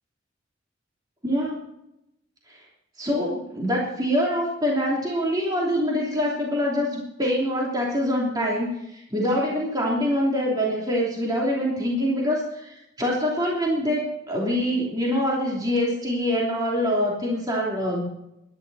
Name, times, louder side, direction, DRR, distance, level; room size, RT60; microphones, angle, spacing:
voice 1, 1.2-1.6 2.5-2.6 3.0-18.1, equal, 20° right, -3 dB, 3.0 m, -25 dB
17.5 x 12.5 x 4.2 m, 0.83 s
head